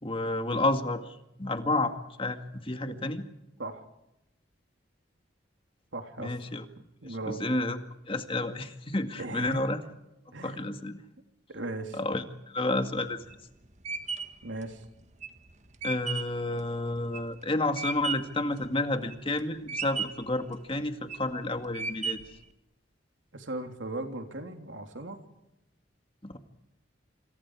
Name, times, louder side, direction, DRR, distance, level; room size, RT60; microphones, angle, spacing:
voice 1, 0.0-3.3 6.2-6.6 7.0-7.8 8.1-9.8 10.4-11.0 11.9-13.2 15.8-22.4 26.2-26.4, left 2 dB, 30° left, 7 dB, 2.1 m, -30 dB
voice 2, 5.9-6.5 7.0-7.5 9.2-9.7 10.3-10.7 11.5-12.0 14.4-14.9 23.3-25.2, right 2 dB, 85° right, 5 dB, 3.5 m, -38 dB
sound 1, 13.0-18.4 18.8-19.4 19.7-20.3 20.9-21.3 21.7-22.4, right 5 dB, 40° right, 1.9 m, -35 dB
27.5 x 27.5 x 4.9 m, 0.89 s
head